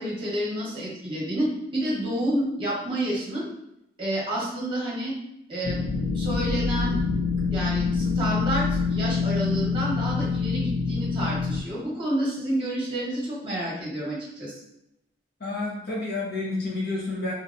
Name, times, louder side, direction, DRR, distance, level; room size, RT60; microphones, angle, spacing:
voice 1, 0.0-3.5 4.0-5.1 5.5-5.8 6.1-7.0 7.5-14.6, right 1 dB, 30° right, -5 dB, 1.1 m, -29 dB
sound 1, 5.6-11.6, left 4 dB, 75° left, 0.4 m, -26 dB
voice 2, 15.4-17.3, left 2 dB, 55° left, -5 dB, 1.2 m, -29 dB
3.0 x 2.8 x 2.5 m, 0.82 s
head